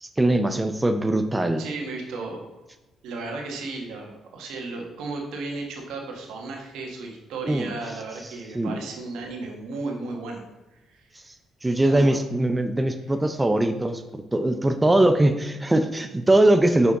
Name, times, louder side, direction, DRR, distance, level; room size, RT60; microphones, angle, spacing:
voice 1, 0.0-1.6 7.4-7.7 8.5-8.8 11.6-16.9, right 1 dB, 15° right, 8 dB, 0.5 m, -21 dB
voice 2, 1.6-2.5 3.0-10.4 10.9-11.1 11.8-12.2, right 3 dB, 85° right, 1 dB, 1.4 m, -34 dB
5.9 x 5.7 x 3.7 m, 1.0 s
cardioid pair, 90°, 0 cm